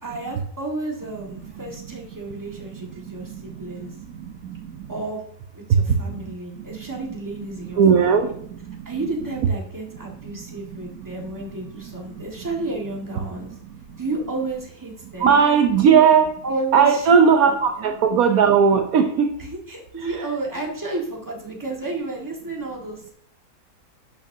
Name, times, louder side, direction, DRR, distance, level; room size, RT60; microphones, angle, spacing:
voice 1, 0.0-3.9 4.9-5.2 5.5-8.3 8.8-13.6 14.0-15.4 15.8-16.0 16.4-17.3 17.8-17.9 19.4-23.1, right 2 dB, 10° right, -1 dB, 1.6 m, -31 dB
voice 2, 7.8-8.3 15.2-16.3 16.7-19.3 20.0-20.3, right 6 dB, 70° right, 5 dB, 1.1 m, -16 dB
11.0 x 7.0 x 2.7 m, 0.63 s
omnidirectional pair, 1.7 m